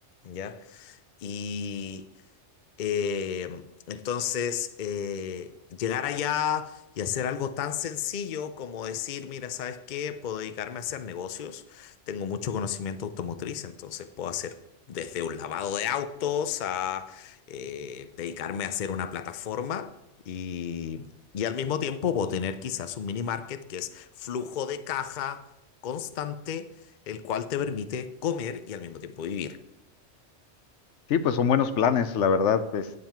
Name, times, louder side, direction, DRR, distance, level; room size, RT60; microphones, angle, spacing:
voice 1, 0.2-2.1 2.8-14.6 14.9-19.9 20.3-21.1 21.3-25.5 25.8-26.7 27.1-29.6, left 8 dB, 50° left, 0.6 m, -32 dB
voice 2, 31.1-33.0, left 7 dB, 75° left, 0.9 m, -23 dB
9.7 x 7.4 x 4.5 m
omnidirectional pair, 1.2 m